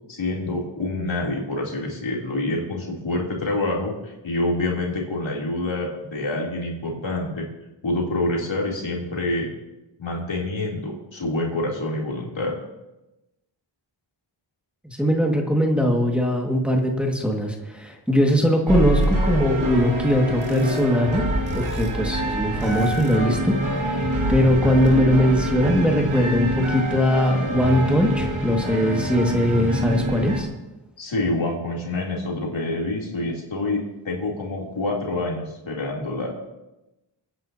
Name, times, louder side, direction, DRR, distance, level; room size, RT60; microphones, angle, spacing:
voice 1, 0.1-7.5 7.8-9.5 10.0-12.5 31.0-36.3, left 2 dB, 75° left, -2 dB, 3.2 m, -27 dB
voice 2, 14.8-21.2 21.5-30.5, equal, ahead, 0 dB, 1.9 m, -21 dB
sound 1, 18.7-30.4, right 1 dB, 85° right, 2.3 m, -25 dB
25.0 x 9.8 x 2.8 m, 0.99 s
wide cardioid pair, 65°, 46 cm